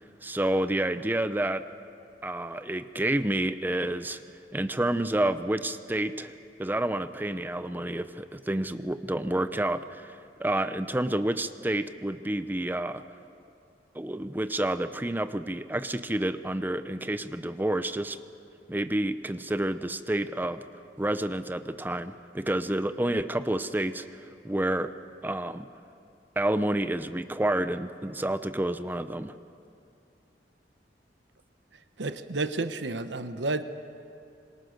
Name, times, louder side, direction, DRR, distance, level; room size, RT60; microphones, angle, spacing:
voice 1, 0.2-1.6 2.2-4.2 4.5-6.3 6.6-13.0 13.9-18.2 18.7-20.7 21.0-24.9 25.2-25.7 26.4-29.3, right 1 dB, 10° right, 12 dB, 0.6 m, -29 dB
voice 2, 32.0-33.6, right 3 dB, 90° right, 10 dB, 1.0 m, -31 dB
26.5 x 22.0 x 6.5 m, 2.5 s
head